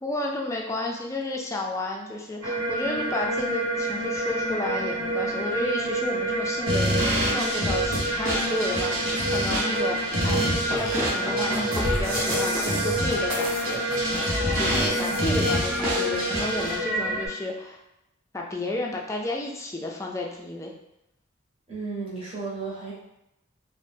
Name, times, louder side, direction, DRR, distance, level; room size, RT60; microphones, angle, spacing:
voice 1, 0.0-13.8 14.5-17.8 18.3-20.7, left 2 dB, 15° left, -1 dB, 0.3 m, -32 dB
sound 1, 2.4-17.3, right 1 dB, 50° right, 1.1 m, -28 dB
sound 2, 6.7-16.8, equal, 85° right, 0.9 m, -28 dB
sound 3, 8.3-16.7, equal, 5° right, 0.7 m, -38 dB
voice 2, 21.7-22.9, right 4 dB, 30° right, -6 dB, 0.9 m, -34 dB
2.6 x 2.1 x 3.3 m, 0.88 s
head